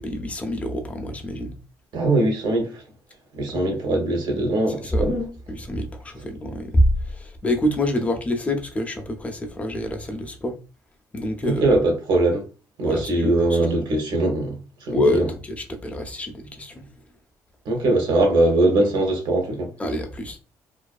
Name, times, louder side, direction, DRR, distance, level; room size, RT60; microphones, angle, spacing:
voice 1, 0.0-1.5 3.5-3.6 4.8-5.1 5.5-6.8 7.1-10.5 11.1-11.8 12.8-13.6 14.9-16.8 19.8-20.4, left 1 dB, 20° left, 0.5 m, -26 dB
voice 2, 1.9-2.8 3.3-5.3 11.4-12.4 12.8-15.3 17.6-19.7, right 2 dB, 75° right, 0.9 m, -21 dB
2.5 x 2.2 x 2.3 m
cardioid pair, 115°, 7 cm